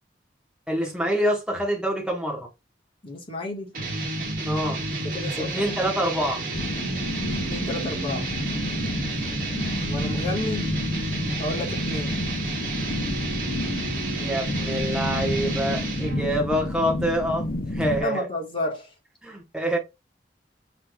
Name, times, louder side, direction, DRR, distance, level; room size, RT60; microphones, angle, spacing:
voice 1, 0.7-2.5 4.5-4.8 5.4-6.4 14.2-17.5 17.7-18.3 19.2-19.8, equal, 5° right, 1.2 m, -26 dB
voice 2, 3.0-3.7 5.0-5.8 7.5-8.3 9.8-10.7 11.4-12.1 17.9-18.9, left 2 dB, 30° left, 1.5 m, -31 dB
sound 1, 3.7-16.3, right 2 dB, 50° right, 1.7 m, -31 dB
sound 2, 6.5-18.0, left 1 dB, 50° left, 0.7 m, -30 dB
5.9 x 3.3 x 2.3 m
head